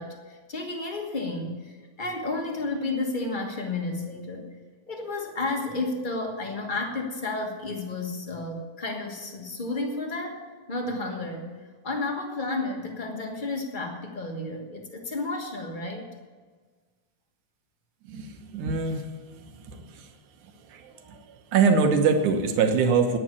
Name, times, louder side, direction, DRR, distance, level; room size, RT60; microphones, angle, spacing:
voice 1, 0.0-4.6 4.9-10.4 10.7-11.5 11.8-16.1, left 2 dB, 60° left, 2 dB, 0.5 m, -32 dB
voice 2, 18.1-19.1 19.7-20.0 20.7-21.2 21.5-23.2, right 5 dB, 85° right, 5 dB, 2.6 m, -23 dB
10.5 x 9.1 x 8.3 m, 1.4 s
omnidirectional pair, 3.4 m